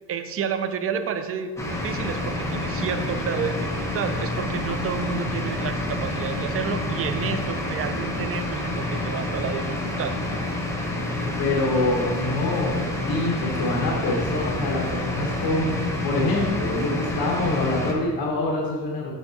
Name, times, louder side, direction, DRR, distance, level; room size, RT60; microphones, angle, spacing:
voice 1, 0.1-1.5 1.8-10.1, right 7 dB, 35° right, 9 dB, 0.5 m, -30 dB
sound 1, 1.6-17.9, left 1 dB, 5° left, 0.8 m, -28 dB
voice 2, 11.4-15.7 16.0-19.1, left 2 dB, 60° left, -3 dB, 1.2 m, -25 dB
6.8 x 5.6 x 2.8 m, 1.4 s
cardioid pair, 130°, 41 cm